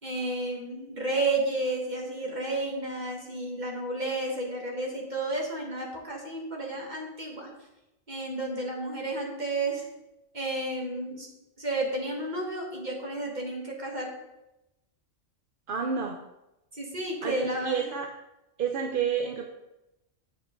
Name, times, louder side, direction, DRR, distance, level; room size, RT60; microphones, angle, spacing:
voice 1, 0.0-7.5 8.1-9.9 10.3-11.3 11.6-14.1 16.7-17.8, right 2 dB, 35° right, -1 dB, 2.0 m, -32 dB
voice 2, 15.7-16.2 17.2-18.1 18.6-19.5, right 6 dB, 50° right, 3 dB, 0.8 m, -29 dB
8.3 x 8.1 x 3.9 m, 0.93 s
omnidirectional pair, 1.2 m